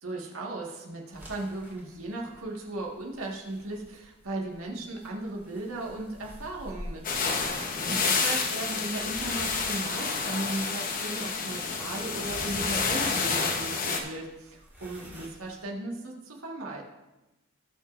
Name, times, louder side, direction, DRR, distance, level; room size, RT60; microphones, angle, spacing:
voice 1, 0.0-16.8, right 2 dB, 90° right, -1 dB, 1.7 m, -37 dB
sound 1, 1.1-15.6, equal, 10° right, 2.2 m, -48 dB
sound 2, 7.0-14.0, left 4 dB, 40° left, 1.0 m, -29 dB
18.5 x 6.3 x 2.6 m, 1.0 s
head